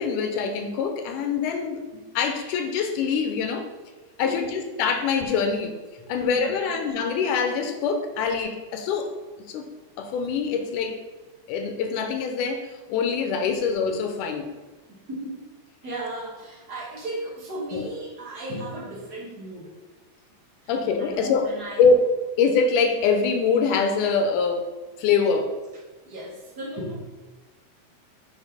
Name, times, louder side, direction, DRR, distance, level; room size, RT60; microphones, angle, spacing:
voice 1, 0.0-3.7 4.2-5.8 6.1-9.1 9.5-9.7 10.0-11.0 11.5-14.5 17.7-17.9 20.7-21.5 21.8-22.1 22.4-24.7 25.0-25.5, left 5 dB, 80° left, 6 dB, 2.1 m, -24 dB
voice 2, 6.0-6.8 14.9-15.4 15.8-19.8 20.9-21.8 25.3-25.4 26.0-27.0, right 1 dB, 70° right, -2 dB, 0.9 m, -35 dB
6.4 x 4.3 x 5.0 m, 1.3 s
omnidirectional pair, 3.9 m